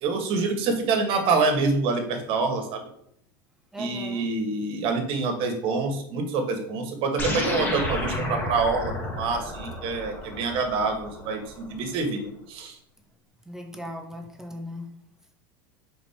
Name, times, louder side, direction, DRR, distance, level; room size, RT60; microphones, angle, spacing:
voice 1, 0.0-2.8 3.8-12.7, right 4 dB, 50° right, 4 dB, 1.6 m, -26 dB
voice 2, 3.7-4.3 13.5-14.9, left 1 dB, 5° right, 2 dB, 1.0 m, -38 dB
sound 1, 7.2-11.8, left 1 dB, 20° left, 1.6 m, -31 dB
5.2 x 4.4 x 4.4 m, 0.71 s
supercardioid pair, 130°, 12 cm